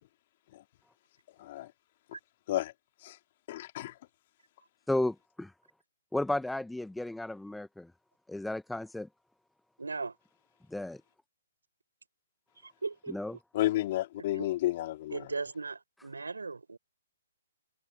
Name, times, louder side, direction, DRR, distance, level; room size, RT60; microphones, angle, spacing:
voice 1, 1.4-1.7 2.5-2.7 3.0-3.2 3.5-3.9 13.5-15.3, left 15 dB, 45° left, 2.8 m, -31 dB
voice 2, 4.9-5.5 6.1-7.9 8.3-9.1 10.7-11.0 13.1-13.4, left 1 dB, 5° left, 1.0 m, -33 dB
voice 3, 9.8-10.1 12.6-13.2 14.3-14.5 15.1-16.8, right 4 dB, 85° right, 6.1 m, -37 dB
hypercardioid pair, 135°, 0 cm